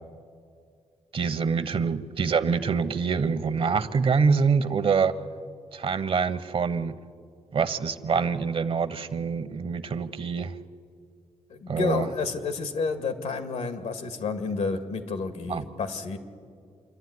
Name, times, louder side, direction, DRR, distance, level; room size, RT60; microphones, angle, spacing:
voice 1, 1.1-5.2 5.7-6.9 7.5-10.6 11.7-12.1 15.5-15.6, right 5 dB, 55° right, 12 dB, 1.0 m, -25 dB
voice 2, 11.5-16.2, left 4 dB, 85° left, 9 dB, 2.0 m, -30 dB
27.5 x 11.5 x 9.7 m, 2.2 s
cardioid pair, 90°, 11 cm